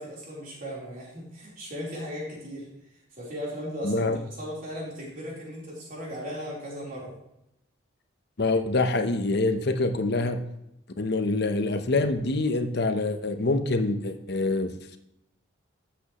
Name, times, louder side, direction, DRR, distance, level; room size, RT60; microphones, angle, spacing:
voice 1, 0.0-7.2, equal, 40° right, -4 dB, 3.8 m, -37 dB
voice 2, 3.8-4.2 8.4-10.4 11.0-15.0, left 2 dB, 55° left, 8 dB, 0.9 m, -25 dB
12.5 x 8.0 x 3.1 m, 0.82 s
head